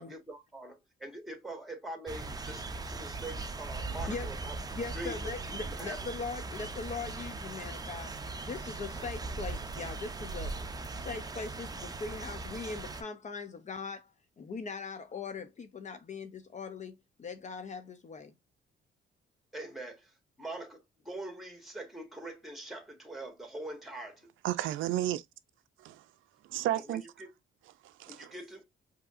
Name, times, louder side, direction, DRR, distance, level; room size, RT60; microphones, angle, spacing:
voice 1, 0.0-5.3 5.6-6.0 19.5-24.3 26.9-27.3 28.1-28.6, right 1 dB, ahead, 1.6 m, -43 dB
sound 1, 2.1-13.0, right 3 dB, 20° right, 0.6 m, -39 dB
voice 2, 4.7-8.1 8.5-10.6 10.9-14.1 14.4-18.3, left 4 dB, 35° left, 0.5 m, -40 dB
voice 3, 24.4-25.2 25.8-26.0 26.5-27.0 27.8-28.3, right 13 dB, 80° right, 0.4 m, -32 dB
4.8 x 2.8 x 2.4 m
cardioid pair, 90°, 20 cm